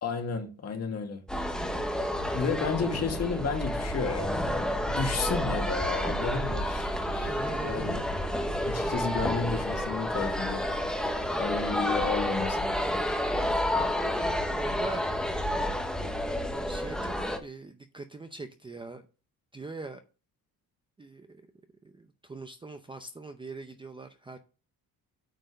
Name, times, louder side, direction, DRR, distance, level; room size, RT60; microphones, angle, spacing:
voice 1, 0.0-1.2 2.3-7.4 7.6-8.0 8.6-10.7 11.4-12.6, left 5 dB, 45° left, 2.2 m, -32 dB
sound 1, 1.3-17.4, equal, ahead, 1.0 m, -30 dB
voice 2, 7.3-7.9 14.5-15.1 16.6-19.0 19.5-20.0 21.0-21.4 21.8-24.4, right 3 dB, 15° right, 0.6 m, -42 dB
9.1 x 4.5 x 6.4 m
cardioid pair, 165°, 37 cm